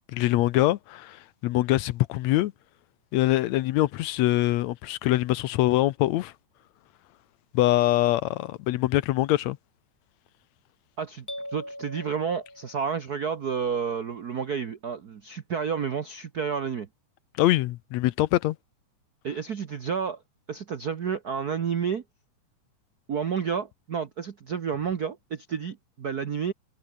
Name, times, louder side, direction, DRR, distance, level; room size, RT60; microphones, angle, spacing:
voice 1, 0.1-2.5 3.1-6.3 7.5-9.6 17.4-18.6, left 16 dB, 75° left, 1.9 m, -24 dB
voice 2, 11.0-16.9 19.2-20.2 20.5-22.0 23.1-26.5, right 6 dB, 65° right, 0.9 m, -30 dB
sound 1, 11.3-13.2, left 1 dB, 5° left, 4.4 m, -41 dB
omnidirectional pair, 3.4 m